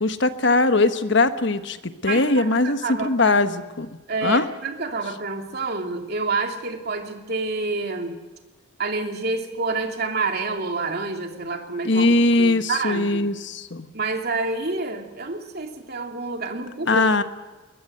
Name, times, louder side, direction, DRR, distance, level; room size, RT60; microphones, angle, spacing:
voice 1, 0.0-3.9 4.2-4.5 11.8-13.9 16.9-17.2, left 2 dB, 60° left, 10 dB, 1.3 m, -20 dB
voice 2, 2.1-3.4 4.1-8.2 8.8-12.1 12.4-13.3 13.9-17.1, right 3 dB, 50° right, 3 dB, 2.9 m, -28 dB
21.0 x 21.0 x 7.9 m, 1.2 s
head